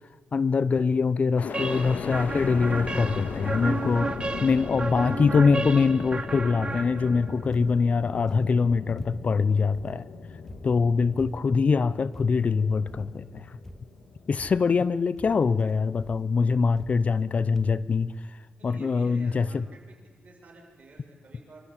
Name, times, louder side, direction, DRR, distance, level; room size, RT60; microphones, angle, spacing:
voice 1, 0.3-4.1 4.4-10.1 10.6-13.5 14.3-18.1 18.6-19.6, left 5 dB, 45° left, 18 dB, 0.6 m, -23 dB
sound 1, 1.4-15.4 15.9-16.6, left 5 dB, 70° left, 1.7 m, -38 dB
sound 2, 1.5-7.4, right 3 dB, 30° right, 1.4 m, -33 dB
sound 3, 7.5-7.9 8.3-9.4 9.7-11.7 12.1-12.6 12.9-13.3 13.6-14.1 14.4-14.9 15.2-15.6 16.0-16.3 16.8-17.3 17.5-17.9 18.6-18.7 18.9-19.0, equal, 10° left, 1.6 m, -48 dB
voice 2, 18.6-20.0 20.2-21.7, right 2 dB, 50° right, 0 dB, 6.7 m, -50 dB
27.0 x 13.0 x 8.3 m, 1.4 s
cardioid pair, 85°, 3 cm